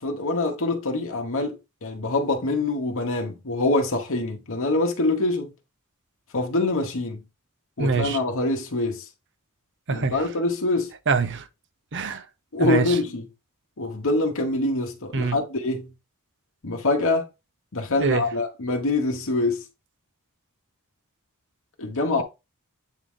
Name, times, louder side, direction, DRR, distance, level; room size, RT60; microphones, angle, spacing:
voice 1, 0.0-5.5 6.3-7.2 7.8-9.0 9.9-10.9 12.5-13.2 13.8-15.9 16.6-17.3 17.7-19.6 21.8-22.2, left 2 dB, 60° left, 1.0 m, -25 dB
voice 2, 7.8-8.2 9.9-10.2 11.1-11.5 11.9-12.2 12.6-13.0 15.1-15.4 18.0-18.3, right 4 dB, 55° right, 0.7 m, -24 dB
8.2 x 3.7 x 3.6 m
head